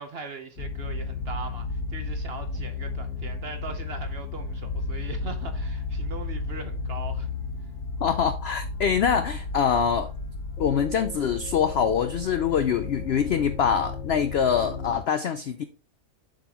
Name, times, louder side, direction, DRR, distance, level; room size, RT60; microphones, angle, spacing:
voice 1, 0.0-7.3, right 4 dB, 45° right, 1.0 m, -40 dB
sound 1, 0.6-15.0, left 3 dB, 55° left, 1.9 m, -33 dB
voice 2, 8.0-10.1 10.6-15.6, left 7 dB, 80° left, 0.5 m, -24 dB
7.4 x 6.5 x 2.9 m
omnidirectional pair, 1.7 m